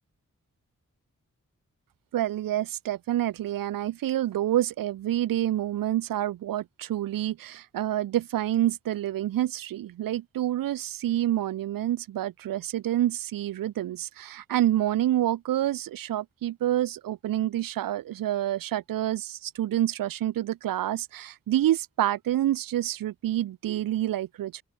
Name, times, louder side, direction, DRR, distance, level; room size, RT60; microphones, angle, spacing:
voice 1, 2.1-24.6, right 13 dB, 80° right, 0.5 m, -28 dB
open air
cardioid pair, 40°, 33 cm